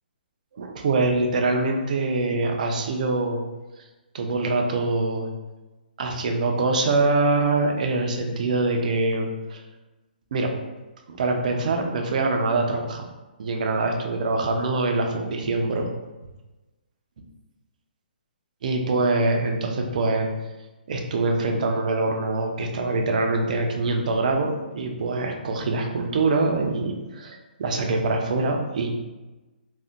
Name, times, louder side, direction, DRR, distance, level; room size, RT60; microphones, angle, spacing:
voice 1, 0.6-3.4 4.1-5.3 6.0-9.6 10.3-10.5 11.1-13.1 13.4-15.9 18.6-20.3 20.9-28.9, right 3 dB, 45° right, 3 dB, 0.4 m, -24 dB
2.6 x 2.1 x 3.5 m, 1.1 s
hypercardioid pair, 165°, 6 cm